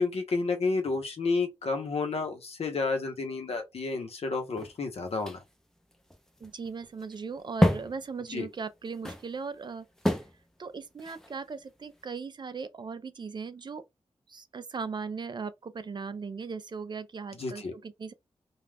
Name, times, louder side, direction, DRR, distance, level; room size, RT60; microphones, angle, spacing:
voice 1, 0.0-5.4 8.3-8.5 17.4-17.7, left 3 dB, 70° left, 0.9 m, -30 dB
sound 1, 4.4-12.0, left 1 dB, 5° left, 0.5 m, -32 dB
voice 2, 6.4-9.9 10.6-13.8 14.3-18.1, right 5 dB, 45° right, 0.3 m, -38 dB
2.3 x 2.2 x 3.3 m
wide cardioid pair, 85°, 11 cm